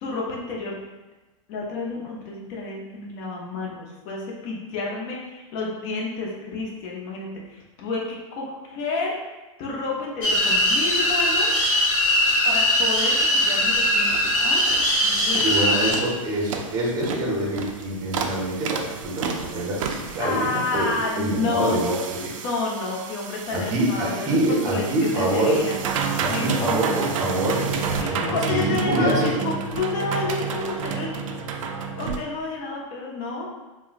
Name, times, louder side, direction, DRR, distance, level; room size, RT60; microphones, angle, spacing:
voice 1, 0.0-0.7 1.5-8.0 8.3-9.2 9.6-11.6 12.4-14.6 15.0-15.7 20.2-21.7 22.4-25.7 26.2-27.0 27.9-31.1 32.0-33.5, left 3 dB, 35° left, -3 dB, 0.6 m, -30 dB
sound 1, 10.2-15.9, left 1 dB, 65° left, 0.9 m, -20 dB
sound 2, 13.8-13.9 14.1-14.3 14.7-14.9 15.3-15.6 15.9-32.2, right 5 dB, 65° right, 0.4 m, -31 dB
voice 2, 15.4-22.3 23.5-25.6 26.2-29.3, right 1 dB, 20° right, -3 dB, 0.7 m, -25 dB
3.5 x 2.1 x 2.5 m, 1.1 s
hypercardioid pair, 145°, 18 cm